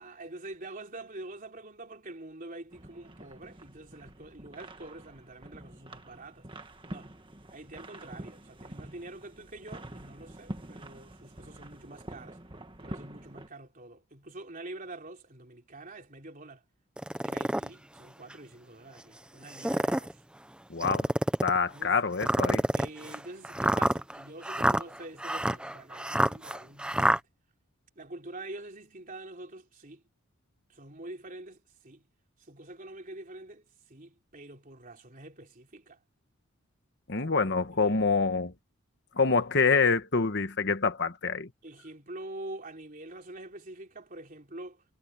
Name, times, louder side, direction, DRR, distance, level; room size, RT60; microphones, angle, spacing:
voice 1, 0.0-6.5 6.8-7.1 7.5-12.4 12.8-16.6 17.2-20.2 21.7-22.0 22.7-27.2 28.0-30.0 30.7-32.0 32.4-36.0 37.2-37.3 37.8-38.0 41.6-44.8, right 2 dB, 35° right, 3.5 m, -45 dB
sound 1, 2.7-13.5, right 1 dB, 20° right, 1.6 m, -46 dB
sound 2, 17.0-17.7 18.3-18.4 19.4-20.1 20.8-21.6 22.2-27.2, right 1 dB, 5° right, 0.6 m, -27 dB
voice 2, 20.7-21.1 21.4-22.6 37.1-38.5 39.2-41.5, left 4 dB, 50° left, 1.3 m, -26 dB
head